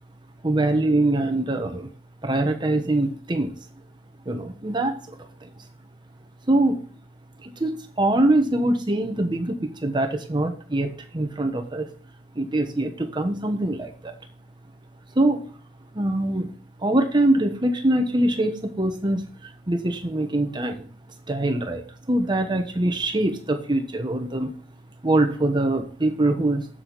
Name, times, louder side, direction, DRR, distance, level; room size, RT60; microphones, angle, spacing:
voice 1, 0.4-1.9 2.2-3.5 4.3-5.5 6.5-6.8 7.4-11.9 12.3-14.1 15.1-15.4 15.9-16.5 16.8-20.9 21.3-24.5 25.0-26.7, right 1 dB, 25° right, 6 dB, 1.0 m, -23 dB
7.7 x 7.7 x 4.0 m, 0.42 s
head